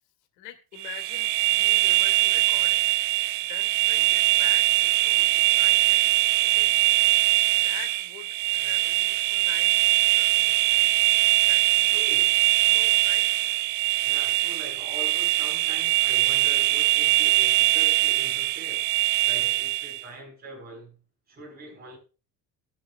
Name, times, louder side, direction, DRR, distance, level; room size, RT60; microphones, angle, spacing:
voice 1, 0.4-3.0 3.5-6.1 6.4-6.7 7.6-9.8 10.1-11.0 11.4-11.9 12.7-13.3, left 12 dB, 85° left, 2.3 m, -44 dB
sound 1, 0.8-20.0, right 18 dB, 75° right, 0.6 m, -22 dB
voice 2, 5.2-5.6 11.2-11.4 11.9-12.4 13.8-18.9 19.2-22.0, right 1 dB, 25° right, 4.5 m, -43 dB
18.0 x 7.6 x 2.3 m
cardioid pair, 130°, 37 cm